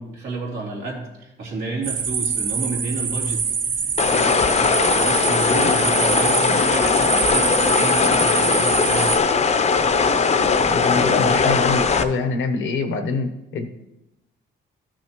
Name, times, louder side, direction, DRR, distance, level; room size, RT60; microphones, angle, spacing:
voice 1, 0.0-3.8 4.1-9.1 10.9-11.3, right 3 dB, 85° right, -2 dB, 2.6 m, -31 dB
sound 1, 1.8-9.2, right 6 dB, 45° right, 0.9 m, -25 dB
sound 2, 4.0-12.0, left 5 dB, 35° left, 0.6 m, -19 dB
voice 2, 10.6-13.7, left 4 dB, 75° left, 7 dB, 0.9 m, -25 dB
13.0 x 6.2 x 3.0 m, 0.93 s
cardioid pair, 90°, 20 cm